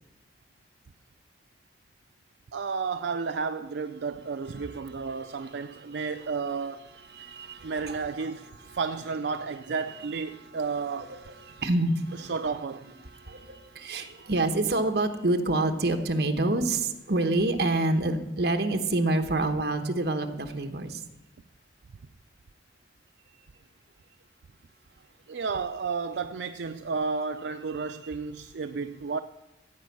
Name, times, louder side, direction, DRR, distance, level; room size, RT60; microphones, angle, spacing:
voice 1, 2.5-6.8 7.6-8.4 8.7-11.1 12.2-12.9 25.3-29.2, right 5 dB, 80° right, 0.4 m, -32 dB
voice 2, 7.1-8.3 8.7-8.8 11.1-12.3 13.1-21.0, right 2 dB, 65° right, 1.1 m, -27 dB
15.0 x 5.4 x 8.4 m
head